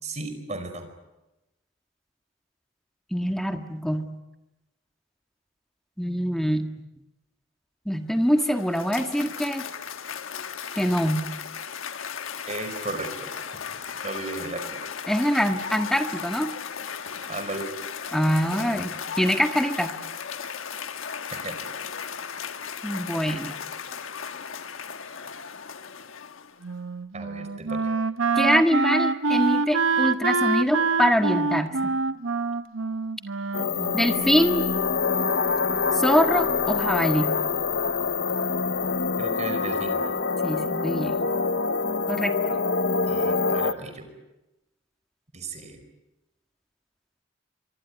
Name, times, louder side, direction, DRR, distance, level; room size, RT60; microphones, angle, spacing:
voice 1, 0.0-0.9 12.5-13.6 14.0-14.6 17.3-17.7 21.3-21.6 27.1-27.9 39.2-40.0 43.1-44.1 45.3-45.8, right 2 dB, 35° right, 8 dB, 4.9 m, -35 dB
voice 2, 3.1-4.1 6.0-6.7 7.8-9.7 10.7-11.3 15.1-16.5 18.1-19.9 22.8-23.6 28.4-31.9 33.9-34.7 35.9-37.4 40.4-41.2 42.1-42.5, equal, ahead, 6 dB, 1.6 m, -24 dB
Cheering / Applause, 8.1-26.7, left 7 dB, 85° left, 1.3 m, -36 dB
Wind instrument woodwind instrument, 26.6-34.4, right 4 dB, 85° right, 1.0 m, -26 dB
sound 1, 33.5-43.7, left 4 dB, 60° left, 0.9 m, -25 dB
25.0 x 24.0 x 9.7 m, 1.0 s
head